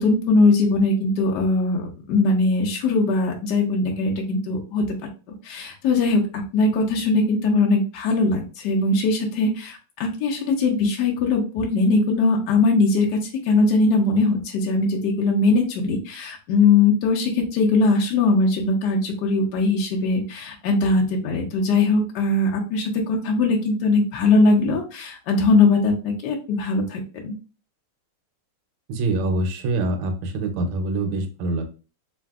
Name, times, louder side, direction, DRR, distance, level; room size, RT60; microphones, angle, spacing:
voice 1, 0.0-4.8 5.4-27.3, left 3 dB, 75° left, 0 dB, 1.0 m, -20 dB
voice 2, 28.9-31.7, right 2 dB, 85° right, 4 dB, 1.5 m, -25 dB
3.3 x 2.6 x 2.3 m, 0.33 s
omnidirectional pair, 2.4 m